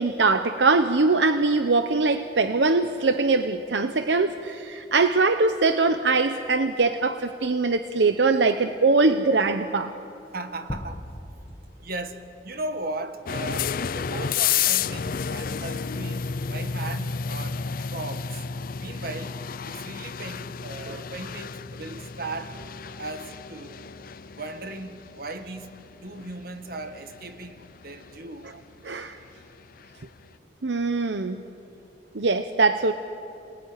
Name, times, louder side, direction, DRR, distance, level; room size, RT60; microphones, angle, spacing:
voice 1, 0.0-9.9 20.9-21.0 28.8-29.2 30.6-31.4 32.1-32.9, right 3 dB, 80° right, 0.8 m, -22 dB
voice 2, 10.3-11.1 11.8-17.6 17.9-18.5 18.8-19.4 19.7-23.8 24.3-28.5 31.2-31.3, right 2 dB, 60° right, 1.8 m, -37 dB
sound 1, 10.7-12.7, left 1 dB, 25° left, 1.2 m, -39 dB
sound 2, 13.3-30.0, left 7 dB, 55° left, 0.5 m, -32 dB
28.0 x 20.0 x 10.0 m
head